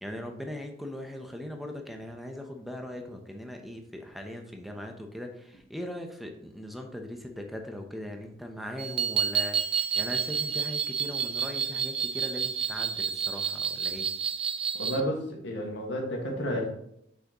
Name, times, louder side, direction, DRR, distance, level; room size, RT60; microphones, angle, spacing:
voice 1, 0.0-14.1, left 1 dB, ahead, 3 dB, 0.8 m, -40 dB
sound 1, 8.8-15.0, right 7 dB, 30° right, 0.5 m, -30 dB
voice 2, 14.8-16.7, equal, 70° left, 0 dB, 1.7 m, -31 dB
6.4 x 5.7 x 3.0 m, 0.75 s
head